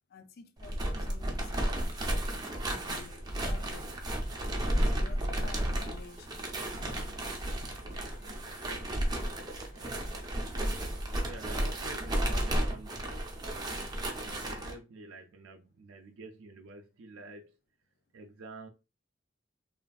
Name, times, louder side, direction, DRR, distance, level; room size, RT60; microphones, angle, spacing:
voice 1, 0.1-4.0 4.6-6.3 6.7-7.2, left 5 dB, 50° left, 0.3 m, -52 dB
sound 1, 0.6-14.7, right 1 dB, 20° right, 0.5 m, -33 dB
sound 2, 2.6-12.2, equal, 75° left, 1.1 m, -54 dB
voice 2, 11.2-13.4 14.2-17.6 18.1-18.7, right 2 dB, 75° right, 0.4 m, -48 dB
3.3 x 2.4 x 2.2 m
head